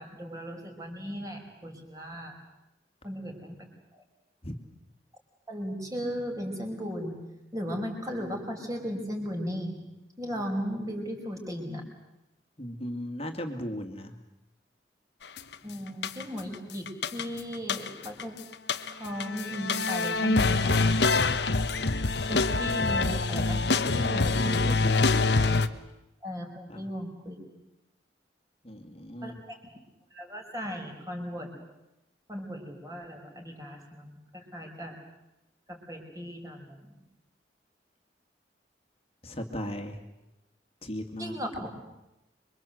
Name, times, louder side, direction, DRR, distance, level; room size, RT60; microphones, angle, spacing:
voice 1, 0.0-2.4 3.0-3.7 3.9-4.0 5.5-7.2 7.5-9.8 10.2-11.8 15.6-18.4 18.9-20.9 22.3-24.8 26.2-27.4 29.2-29.6 30.1-31.5 32.3-35.0 35.7-37.0 41.2-41.7, equal, 20° right, 1 dB, 5.3 m, -36 dB
voice 2, 12.6-14.2 24.2-25.3 26.7-26.9 28.6-29.4 39.2-40.0 40.8-41.3, equal, 35° left, 5 dB, 2.3 m, -36 dB
sound 1, 15.4-15.5 16.0-16.5 16.9-18.2 18.5-25.7, left 3 dB, 70° left, 1.1 m, -25 dB
26.5 x 24.0 x 7.9 m, 0.93 s
head